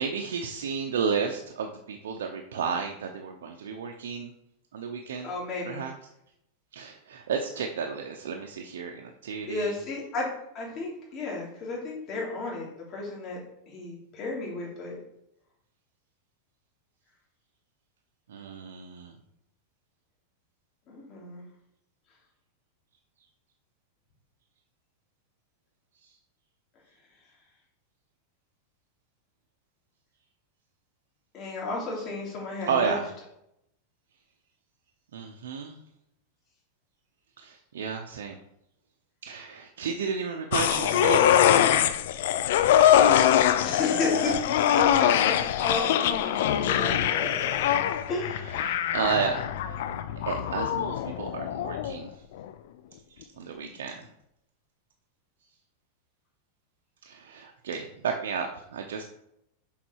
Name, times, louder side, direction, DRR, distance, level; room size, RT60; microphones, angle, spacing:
voice 1, 0.0-4.3 4.7-5.3 5.6-5.9 6.7-9.8 18.3-19.2 26.0-26.1 32.7-33.1 35.1-35.8 37.4-38.4 39.2-41.4 46.5-46.7 47.1-47.4 48.3-49.8 50.3-52.2 53.4-54.1 57.0-59.0, right 6 dB, 90° right, 2 dB, 0.8 m, -32 dB
voice 2, 5.2-5.9 9.5-10.3 10.5-13.4 13.7-15.0 20.9-21.4 31.3-33.0 43.6-47.8 48.1-48.8, left 3 dB, 35° left, -4 dB, 3.4 m, -33 dB
sound 1, 40.5-52.0 52.4-52.5, left 10 dB, 70° left, 0.6 m, -23 dB
7.1 x 5.6 x 4.7 m, 0.81 s
supercardioid pair, 140°, 0 cm